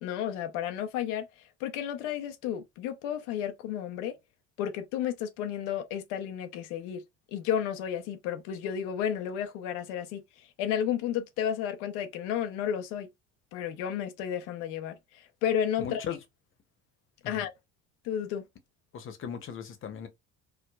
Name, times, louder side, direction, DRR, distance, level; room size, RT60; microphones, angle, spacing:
voice 1, 0.0-4.1 4.6-7.0 7.3-13.1 13.5-16.0 17.3-17.5 18.0-18.4, left 9 dB, 90° left, 0.6 m, -32 dB
voice 2, 15.8-16.2 17.2-17.3 18.9-20.1, left 7 dB, 40° left, 0.8 m, -37 dB
4.6 x 2.1 x 2.2 m
cardioid pair, 110°, 30 cm